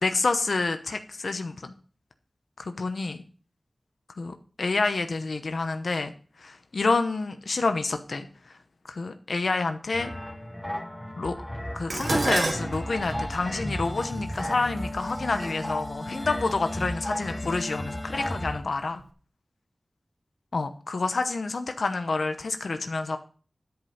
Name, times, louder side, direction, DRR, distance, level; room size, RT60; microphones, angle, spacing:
voice 1, 0.0-1.7 2.6-3.2 4.2-6.1 6.4-8.6 8.9-10.1 11.2-11.3 11.7-19.0 20.5-23.2, left 3 dB, 85° left, 7 dB, 0.8 m, -28 dB
sound 1, 9.9-18.6, left 1 dB, 10° left, 1.3 m, -34 dB
Dishes pots and pans, 11.9-16.3 17.2-17.6 17.9-18.8 19.0-19.1, right 2 dB, 65° right, 1.1 m, -32 dB
10.5 x 5.2 x 5.6 m, 0.40 s
wide cardioid pair, 55°, 0 cm